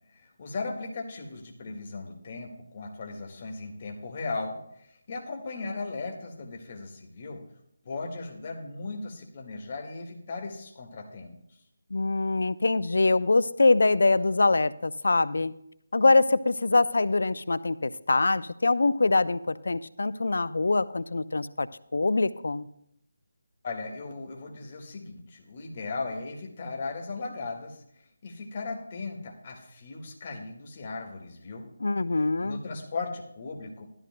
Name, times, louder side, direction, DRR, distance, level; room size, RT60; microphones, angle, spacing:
voice 1, 0.1-7.5 7.9-11.4 23.6-27.8 28.2-31.7 32.4-33.8, left 3 dB, 35° left, 2 dB, 1.8 m, -37 dB
voice 2, 11.9-15.5 15.9-22.7 31.8-32.6, left 3 dB, 65° left, 17 dB, 0.5 m, -24 dB
15.5 x 13.0 x 2.2 m, 0.75 s
figure-of-eight pair, 155°, 0 cm